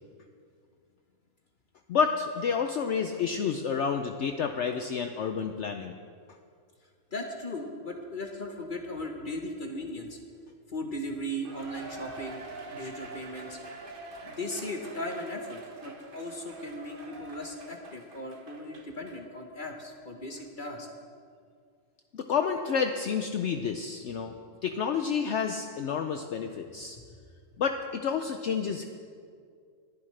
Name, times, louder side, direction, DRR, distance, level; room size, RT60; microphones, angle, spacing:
voice 1, 1.9-5.9 22.1-24.3 24.6-27.0 27.6-28.8, left 6 dB, 65° left, 6 dB, 0.8 m, -29 dB
voice 2, 7.1-10.2 10.7-13.6 14.2-20.9, left 1 dB, 40° left, 2 dB, 1.1 m, -37 dB
Cheering, 11.4-19.2 19.6-19.7 20.4-20.5, right 3 dB, 40° right, 1.1 m, -45 dB
20.5 x 11.0 x 3.3 m, 2.2 s
omnidirectional pair, 1.5 m